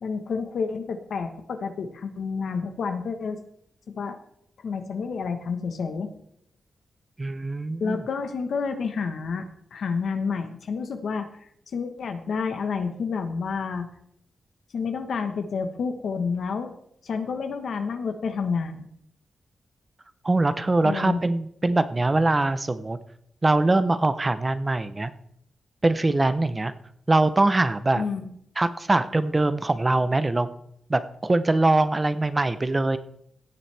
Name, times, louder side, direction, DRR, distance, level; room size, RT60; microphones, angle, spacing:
voice 1, 0.0-3.4 3.9-4.2 4.6-6.1 7.8-11.3 11.7-13.9 14.7-16.7 17.0-18.9 20.8-21.2 28.0-28.3, left 5 dB, 75° left, 6 dB, 1.3 m, -29 dB
voice 2, 7.2-8.0 20.2-23.0 23.4-25.1 25.8-26.7 27.1-28.0 28.6-30.5 30.9-33.0, right 2 dB, 30° right, 12 dB, 0.8 m, -22 dB
16.5 x 7.4 x 3.5 m, 0.71 s
cardioid pair, 60°, 0 cm